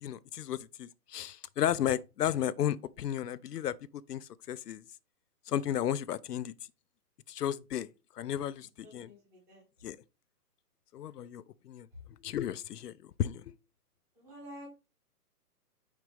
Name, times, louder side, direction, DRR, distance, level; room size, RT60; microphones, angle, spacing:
voice 1, 0.0-4.8 5.5-6.5 7.3-7.9 8.2-9.1 9.8-10.0 10.9-11.9 12.2-12.9 13.2-13.5, left 10 dB, 75° left, 0.6 m, -34 dB
voice 2, 8.8-9.6 14.1-14.7, equal, 5° right, 1.0 m, -50 dB
6.3 x 5.0 x 3.4 m
hypercardioid pair, 170°, 48 cm